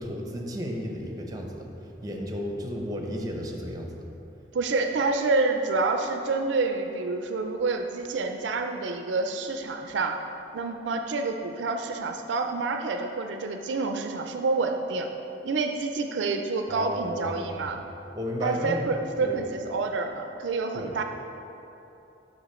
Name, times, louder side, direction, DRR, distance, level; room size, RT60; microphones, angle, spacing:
voice 1, 0.0-1.7 2.0-4.0 16.7-17.6 18.1-18.8 19.2-19.4 20.7-20.9, equal, 20° right, 1 dB, 0.6 m, -33 dB
voice 2, 4.5-10.2 10.5-15.1 15.4-17.8 18.4-21.0, right 3 dB, 70° right, 5 dB, 0.4 m, -28 dB
6.8 x 5.5 x 4.2 m, 2.9 s
head